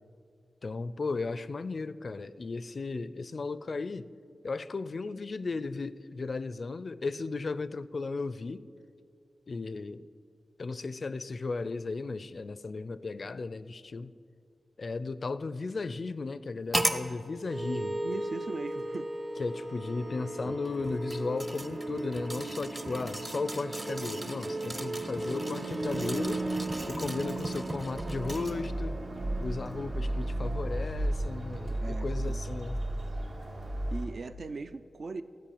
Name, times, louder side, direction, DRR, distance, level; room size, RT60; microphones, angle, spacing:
voice 1, 0.6-4.1 4.4-8.6 9.5-10.1 10.6-14.1 14.8-18.0 19.4-26.5 26.8-29.0 29.4-32.8, left 3 dB, 55° left, 0.4 m, -35 dB
sound 1, 16.7-17.1 18.1-18.2 20.6-28.7 29.2-29.3, right 1 dB, 25° right, 0.7 m, -37 dB
sound 2, 17.5-34.0, right 1 dB, 45° right, 1.1 m, -35 dB
voice 2, 18.0-19.1 20.4-20.6 31.8-32.4 33.9-35.2, right 3 dB, 60° right, 0.4 m, -39 dB
Bird, 25.8-34.0, right 1 dB, 80° right, 2.1 m, -48 dB
13.5 x 5.3 x 8.5 m
wide cardioid pair, 90°, 0 cm